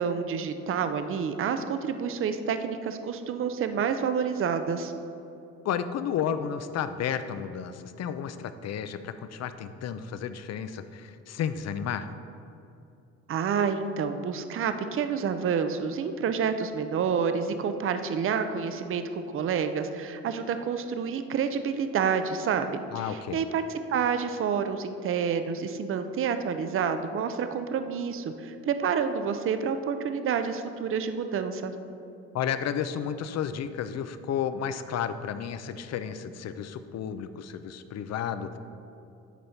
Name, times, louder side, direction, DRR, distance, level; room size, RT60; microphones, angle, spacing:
voice 1, 0.0-4.9 13.3-23.6 23.9-31.7, right 6 dB, 45° right, 9 dB, 0.5 m, -28 dB
voice 2, 5.6-12.1 22.9-23.4 32.3-38.6, left 8 dB, 60° left, 11 dB, 0.5 m, -32 dB
10.0 x 4.1 x 4.4 m, 2.7 s
cardioid pair, 90°, 30 cm